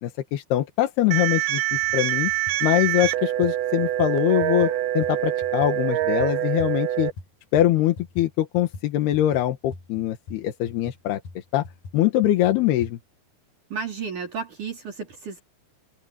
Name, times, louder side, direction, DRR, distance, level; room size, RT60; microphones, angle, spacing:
voice 1, 0.0-2.3 2.6-7.1 7.5-11.6 11.9-13.0, left 13 dB, 90° left, 3.4 m, -23 dB
sound 1, 1.1-7.1, right 14 dB, 80° right, 2.8 m, -25 dB
sound 2, 1.7-2.0 2.3-7.3 7.6-12.9, left 3 dB, 60° left, 7.2 m, -43 dB
voice 2, 13.7-15.4, right 5 dB, 55° right, 4.8 m, -32 dB
omnidirectional pair, 4.4 m